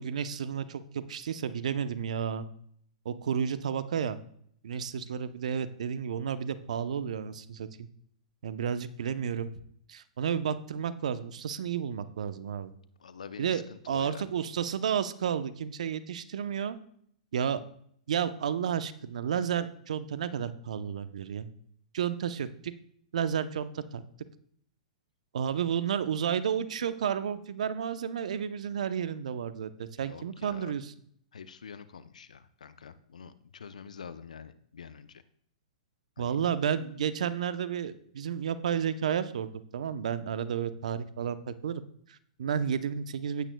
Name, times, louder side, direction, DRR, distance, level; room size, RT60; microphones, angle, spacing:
voice 1, 0.0-2.5 3.0-4.2 4.6-7.9 8.4-9.5 9.9-12.7 13.4-16.8 17.3-17.6 18.1-21.5 21.9-22.7 23.1-24.0 25.3-30.9 36.2-41.8 42.1-43.5, right 8 dB, 70° right, 13 dB, 0.8 m, -32 dB
voice 2, 13.0-14.2 25.6-25.7 30.0-30.8 31.3-35.2 36.2-36.4, left 6 dB, 80° left, 13 dB, 0.6 m, -46 dB
14.5 x 9.0 x 2.3 m, 0.64 s
hypercardioid pair, 120°, 4 cm